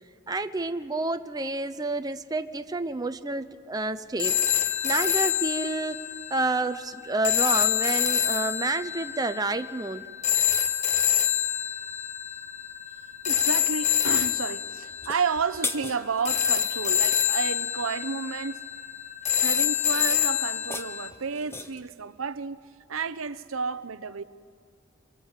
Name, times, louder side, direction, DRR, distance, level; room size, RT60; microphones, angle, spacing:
voice 1, 0.3-6.0 6.3-10.1, right 2 dB, 20° right, 0.7 m, -29 dB
sound 1, 4.2-21.1, left 9 dB, 35° left, 1.2 m, -27 dB
voice 2, 13.2-18.6 19.3-22.6 22.9-24.2, right 5 dB, 80° right, 0.8 m, -31 dB
sound 2, 14.9-16.5 20.4-21.9, left 3 dB, 10° left, 0.9 m, -37 dB
26.5 x 23.5 x 8.2 m
head